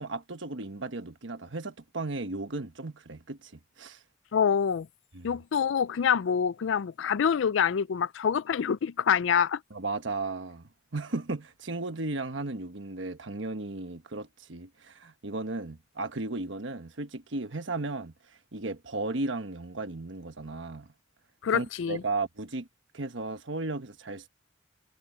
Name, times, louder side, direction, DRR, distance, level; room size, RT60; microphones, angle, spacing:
voice 1, 0.0-3.5 3.8-4.0 5.1-5.3 9.7-10.6 10.9-18.1 18.5-20.9 21.5-22.7 22.9-24.3, right 2 dB, 75° right, 1.2 m, -35 dB
voice 2, 4.3-4.9 5.2-9.6 21.4-22.0, left 7 dB, 80° left, 0.4 m, -26 dB
head